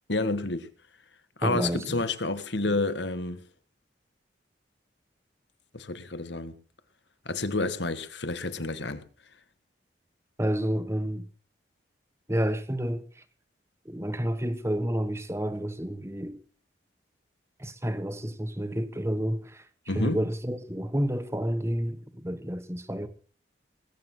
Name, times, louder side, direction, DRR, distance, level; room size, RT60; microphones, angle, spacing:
voice 1, 0.1-0.7 1.4-3.4 5.7-6.5 7.3-9.0 19.9-20.2, left 2 dB, 75° left, 1.7 m, -29 dB
voice 2, 1.4-2.0 10.4-11.3 12.3-13.2 13.8-16.4 17.6-19.7 19.9-23.1, equal, 15° right, 1.3 m, -30 dB
20.5 x 9.6 x 6.2 m
head